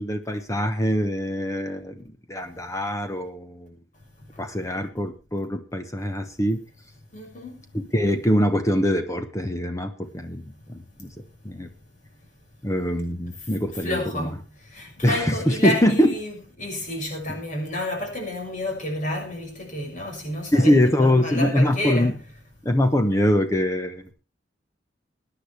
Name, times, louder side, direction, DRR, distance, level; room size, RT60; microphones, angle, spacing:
voice 1, 0.0-3.7 4.4-6.6 7.7-10.4 10.7-11.1 11.4-11.7 12.6-14.3 15.0-16.1 20.5-22.1 22.6-24.1, left 1 dB, 15° left, 1.0 m, -23 dB
voice 2, 7.1-7.6 13.8-14.4 14.7-22.2, left 1 dB, 40° left, 6.2 m, -30 dB
20.5 x 9.9 x 3.4 m
head